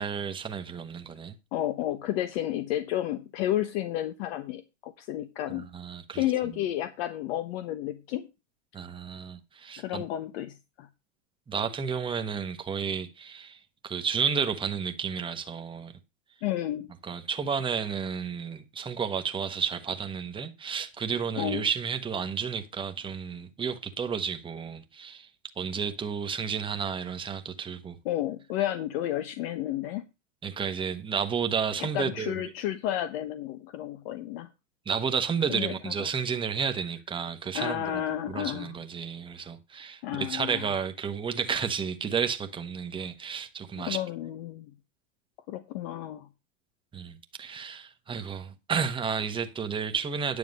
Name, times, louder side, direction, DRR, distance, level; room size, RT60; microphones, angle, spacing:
voice 1, 0.0-1.3 5.5-6.2 8.7-10.0 11.5-15.9 17.0-25.3 25.6-28.0 30.4-32.4 34.9-44.0 46.9-50.4, right 6 dB, 15° right, 1.1 m, -32 dB
voice 2, 1.5-5.7 6.1-8.3 9.8-10.9 16.4-16.9 21.4-21.6 28.0-30.0 31.8-34.5 35.5-35.9 37.5-38.7 40.0-40.7 43.8-44.7 45.5-46.3, left 12 dB, 50° left, 1.1 m, -31 dB
9.9 x 6.7 x 5.3 m
hypercardioid pair, 130°, 38 cm